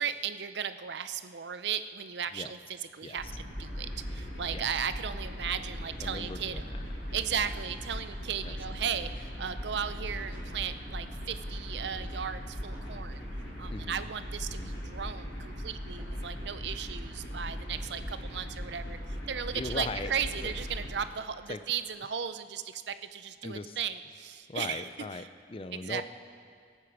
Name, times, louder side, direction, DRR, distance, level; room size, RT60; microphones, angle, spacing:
voice 1, 0.0-2.6 2.9-3.2 3.6-6.5 7.1-13.2 13.6-24.9 25.7-26.0, right 8 dB, 65° right, 12 dB, 0.5 m, -36 dB
sound 1, 3.2-20.9, equal, 90° left, 4.2 m, -39 dB
voice 2, 6.0-6.8 7.3-7.4 8.4-8.5 13.7-14.0 14.5-14.7 19.5-20.5 21.5-21.6 23.4-23.8 24.5-26.0, left 3 dB, 30° left, 11 dB, 0.4 m, -39 dB
sound 2, 10.2-11.1 12.6-13.5 15.9-16.9, equal, 15° right, 3.2 m, -57 dB
23.0 x 8.5 x 4.7 m, 2.2 s
head